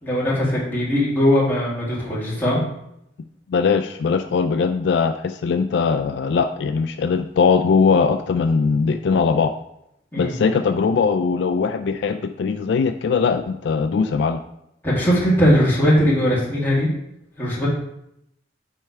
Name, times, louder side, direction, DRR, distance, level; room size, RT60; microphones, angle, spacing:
voice 1, 0.0-2.6 10.1-10.4 14.8-16.9 17.4-17.7, equal, 10° left, -7 dB, 2.1 m, -19 dB
voice 2, 3.5-9.5 10.2-14.4, left 5 dB, 65° left, 8 dB, 0.3 m, -20 dB
7.6 x 3.3 x 4.6 m, 0.80 s
head